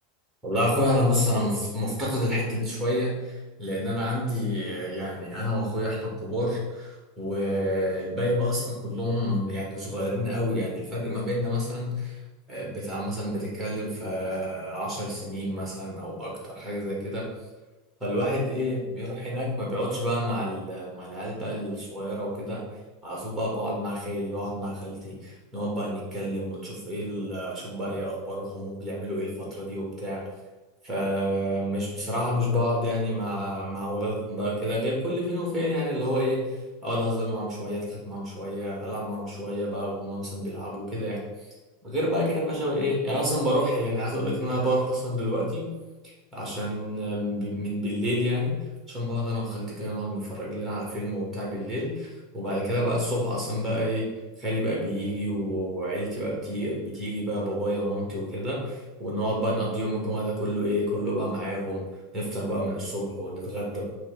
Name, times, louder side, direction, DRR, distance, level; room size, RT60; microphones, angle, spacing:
voice 1, 0.4-12.2 12.5-17.2 18.0-22.6 23.0-30.2 30.8-36.5 36.8-41.2 41.8-45.7 46.3-48.6 48.9-54.1 54.4-61.8 62.1-63.8, equal, ahead, -4 dB, 2.0 m, -29 dB
5.8 x 3.1 x 5.4 m, 1.2 s
supercardioid pair, 160°, 0 cm